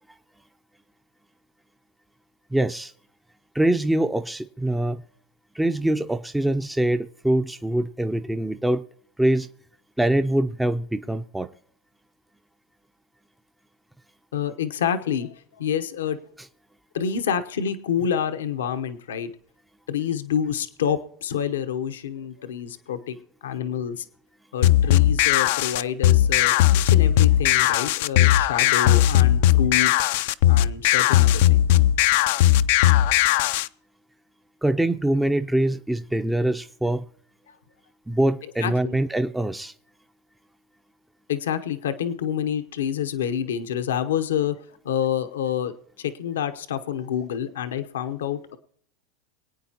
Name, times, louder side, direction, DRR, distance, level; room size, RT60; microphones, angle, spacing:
voice 1, 2.5-2.9 3.5-5.0 5.5-8.8 9.2-9.5 10.0-11.5 34.6-37.0 38.1-39.7, right 1 dB, 5° right, 0.5 m, -23 dB
voice 2, 14.3-15.3 15.6-16.2 16.9-19.3 19.9-24.1 24.5-29.9 30.5-31.7 37.5-37.6 38.6-39.0 41.3-44.6 44.8-45.7 46.0-48.6, left 8 dB, 85° left, 0.9 m, -28 dB
sound 1, 24.6-33.7, left 13 dB, 70° left, 0.4 m, -18 dB
24.5 x 9.0 x 2.9 m
hypercardioid pair, 105°, 0 cm